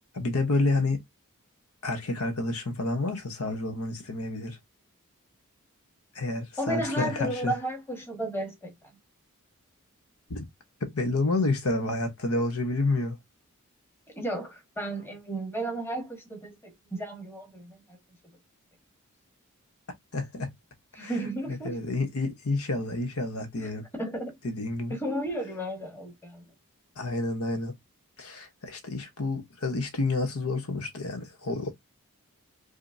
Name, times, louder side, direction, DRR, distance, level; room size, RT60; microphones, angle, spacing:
voice 1, 0.1-1.0 1.8-4.6 6.1-7.5 10.3-10.5 10.8-13.2 20.1-20.5 21.0-21.1 21.5-23.9 24.4-25.0 27.0-27.7 28.2-31.7, left 2 dB, 85° left, 1.0 m, -29 dB
voice 2, 6.6-8.9 14.1-18.0 20.9-21.8 23.6-24.4 24.9-26.4, right 1 dB, 10° left, 1.4 m, -33 dB
5.0 x 2.2 x 2.6 m
head